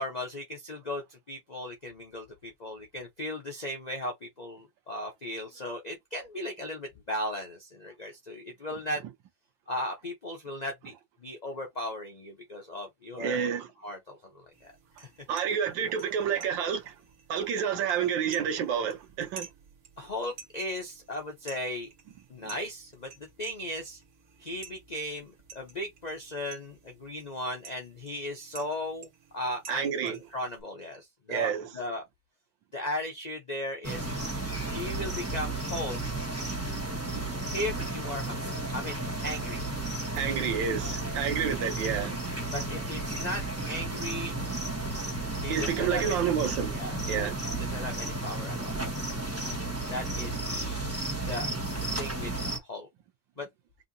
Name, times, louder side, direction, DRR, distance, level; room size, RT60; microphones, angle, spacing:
voice 1, 0.0-9.0 9.7-10.9 11.2-13.4 13.8-14.7 15.0-15.1 20.0-21.9 22.3-24.0 24.4-32.0 32.7-34.1 34.7-36.0 37.5-40.0 42.5-44.4 45.4-46.2 46.7-47.3 47.6-48.8 49.8-50.9 51.2-51.4 52.0-52.3 52.6-52.9 53.4-53.5, left 1 dB, 55° left, 0.4 m, -37 dB
voice 2, 13.2-13.7 15.3-16.9 17.3-19.5 29.7-30.2 31.3-31.7 37.1-37.2 40.1-42.3 45.5-46.8 47.1-47.4, right 8 dB, 85° right, 1.6 m, -29 dB
sound 1, 14.5-30.6, right 5 dB, 55° right, 1.7 m, -52 dB
sound 2, 33.8-52.6, right 2 dB, 10° right, 1.0 m, -33 dB
5.4 x 2.7 x 2.7 m
omnidirectional pair, 2.0 m